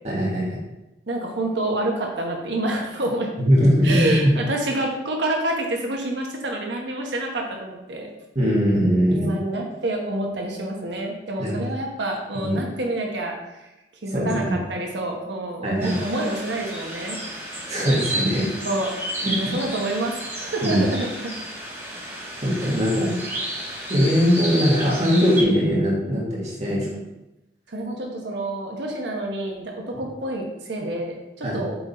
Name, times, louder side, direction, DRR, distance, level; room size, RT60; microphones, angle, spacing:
voice 1, 0.0-0.6 3.4-4.3 8.4-9.3 11.4-11.6 12.3-12.5 14.1-14.5 15.6-16.0 17.7-18.5 19.2-19.4 20.6-20.8 22.4-23.1 23.9-26.9 31.4-31.6, equal, 40° right, -5 dB, 2.1 m, -20 dB
voice 2, 1.1-3.3 3.8-8.1 9.1-13.7 14.0-17.2 18.7-18.9 19.2-21.3 22.6-22.7 27.7-31.8, right 1 dB, 75° right, 1 dB, 1.2 m, -28 dB
sound 1, 15.8-25.4, right 1 dB, 15° right, 2.3 m, -32 dB
7.5 x 3.9 x 4.3 m, 0.98 s
head